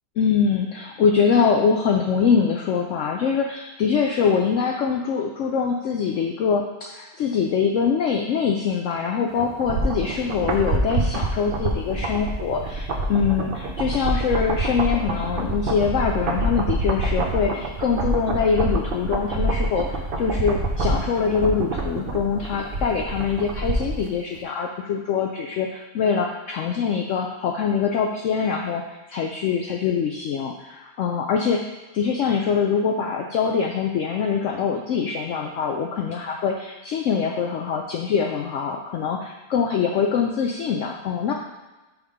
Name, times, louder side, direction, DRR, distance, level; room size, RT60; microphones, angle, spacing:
voice 1, 0.2-41.3, left 6 dB, 65° left, 1 dB, 0.8 m, -24 dB
sound 1, 9.4-24.1 24.4-24.5, right 2 dB, 50° right, 0.7 m, -26 dB
6.3 x 3.6 x 4.8 m, 1.1 s
omnidirectional pair, 1.6 m